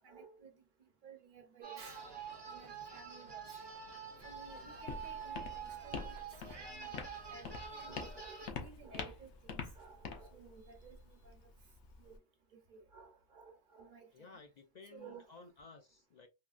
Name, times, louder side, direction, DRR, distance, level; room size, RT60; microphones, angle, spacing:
voice 1, 0.0-0.5 1.0-2.2 2.4-3.7 4.2-6.2 6.6-11.0 11.2-11.4 12.0-12.2 12.5-14.3 14.9-15.3, right 5 dB, 50° right, 0.9 m, -55 dB
sound 1, 1.6-8.5, right 6 dB, 30° right, 0.6 m, -47 dB
sound 2, 1.8-8.0, right 5 dB, 85° right, 0.9 m, -61 dB
Walk footsteps, 4.2-12.2, left 5 dB, 80° left, 1.0 m, -46 dB
voice 2, 14.1-16.3, left 4 dB, 55° left, 0.5 m, -56 dB
3.6 x 2.2 x 2.3 m
omnidirectional pair, 1.1 m